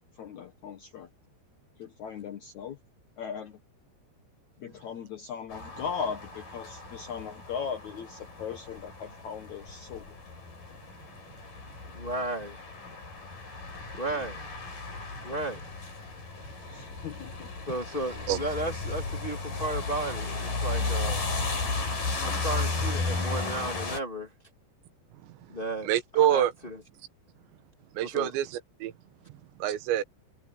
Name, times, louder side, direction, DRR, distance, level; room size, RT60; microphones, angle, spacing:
voice 1, 0.2-1.1 1.8-2.8 3.2-3.6 4.6-10.1 14.1-14.3 16.7-17.5, left 7 dB, 85° left, 1.6 m, -38 dB
sound 1, 5.5-24.0, left 3 dB, 45° left, 8.4 m, -34 dB
voice 2, 11.9-12.6 13.9-14.4 15.2-15.6 17.7-21.3 22.2-24.3 25.5-25.9 26.2-26.8 28.0-28.3, right 1 dB, 20° left, 1.4 m, -34 dB
voice 3, 25.8-26.5 27.9-28.9 29.6-30.0, right 11 dB, 80° right, 3.4 m, -26 dB
omnidirectional pair, 5.2 m